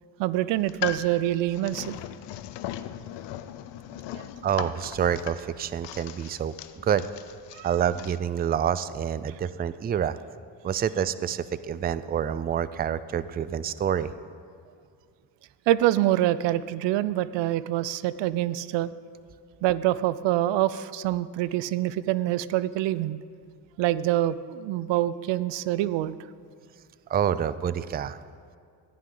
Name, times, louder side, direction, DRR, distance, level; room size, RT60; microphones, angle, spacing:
voice 1, 0.2-2.0 4.1-4.3 7.5-7.8 15.7-18.9 19.6-23.2 23.8-26.1, right 14 dB, 85° right, 17 dB, 0.5 m, -25 dB
sound 1, 0.6-8.2, left 11 dB, 75° left, 0.6 m, -39 dB
voice 2, 4.4-6.5 6.8-7.1 7.6-10.2 10.6-14.1 27.1-28.2, right 9 dB, 25° right, 15 dB, 0.3 m, -27 dB
14.5 x 10.5 x 3.8 m, 2.2 s
cardioid pair, 80°, 42 cm